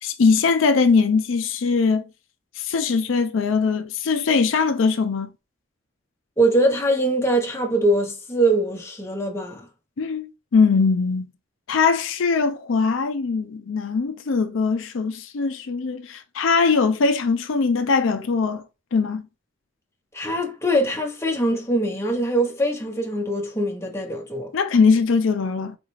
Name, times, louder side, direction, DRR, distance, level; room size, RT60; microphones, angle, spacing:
voice 1, 0.0-2.1 2.6-5.3 10.0-11.3 11.7-18.6 18.9-19.2 24.5-25.8, left 4 dB, 80° left, 0.5 m, -21 dB
voice 2, 6.4-9.6 20.1-24.5, right 1 dB, 15° left, 0.8 m, -22 dB
4.2 x 2.4 x 3.1 m
head